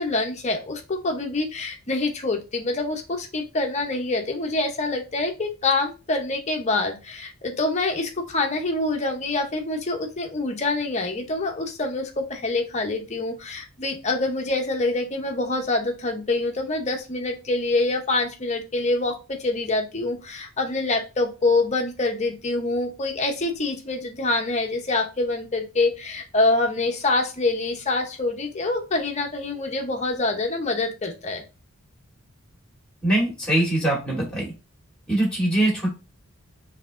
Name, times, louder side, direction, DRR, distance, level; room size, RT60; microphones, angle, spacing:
voice 1, 0.0-31.4, left 2 dB, 30° left, 3 dB, 0.7 m, -26 dB
voice 2, 33.0-34.5 35.1-35.9, right 1 dB, 5° left, -4 dB, 2.1 m, -22 dB
5.8 x 2.8 x 2.5 m, 0.30 s
head